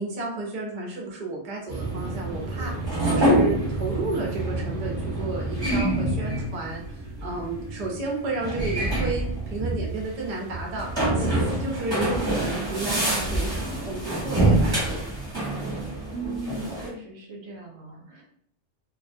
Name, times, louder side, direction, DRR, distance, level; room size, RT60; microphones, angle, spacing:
voice 1, 0.0-6.8 7.2-15.0, right 2 dB, 40° right, -2 dB, 0.6 m, -32 dB
sound 1, 1.7-16.9, right 1 dB, 20° right, 0.9 m, -26 dB
voice 2, 16.1-18.2, right 2 dB, 70° right, 0 dB, 0.8 m, -37 dB
2.3 x 2.2 x 2.6 m, 0.64 s
omnidirectional pair, 1.2 m